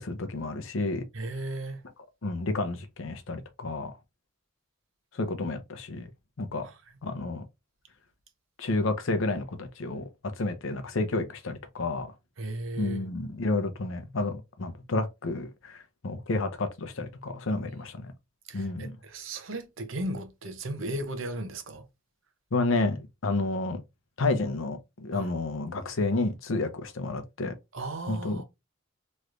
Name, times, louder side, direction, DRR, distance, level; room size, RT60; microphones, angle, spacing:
voice 1, 0.0-1.1 2.2-3.9 5.1-6.1 6.4-6.7 7.0-7.4 8.6-10.0 10.4-12.1 12.8-18.1 18.5-19.0 22.5-23.8 24.2-27.5 28.1-28.4, left 2 dB, 75° left, 0.7 m, -30 dB
voice 2, 1.1-1.8 6.6-6.8 12.4-13.0 18.5-21.8 25.1-25.3 27.7-28.4, right 1 dB, 70° right, 0.8 m, -36 dB
3.2 x 3.1 x 2.5 m
head